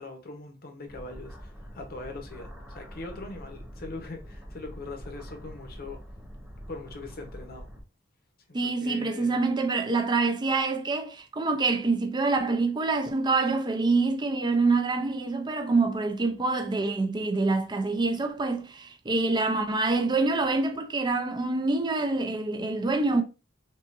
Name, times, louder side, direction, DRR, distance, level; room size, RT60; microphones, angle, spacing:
voice 1, 0.0-6.0 6.7-7.7 8.5-9.5, left 2 dB, 50° left, 1.0 m, -41 dB
sound 1, 0.9-7.8, equal, 5° right, 1.0 m, -44 dB
voice 2, 8.5-23.2, right 3 dB, 25° right, 0.5 m, -26 dB
5.4 x 2.5 x 2.5 m
head